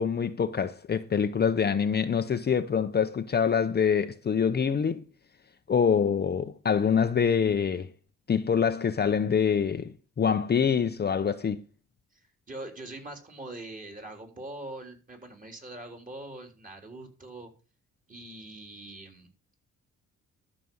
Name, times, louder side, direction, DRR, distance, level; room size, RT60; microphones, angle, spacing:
voice 1, 0.0-5.0 5.7-7.9 8.3-9.9 10.2-11.6, left 7 dB, 35° left, 0.7 m, -25 dB
voice 2, 12.1-17.5 18.1-19.3, right 2 dB, 25° right, 3.8 m, -43 dB
13.0 x 6.1 x 5.5 m
cardioid pair, 90°, 30 cm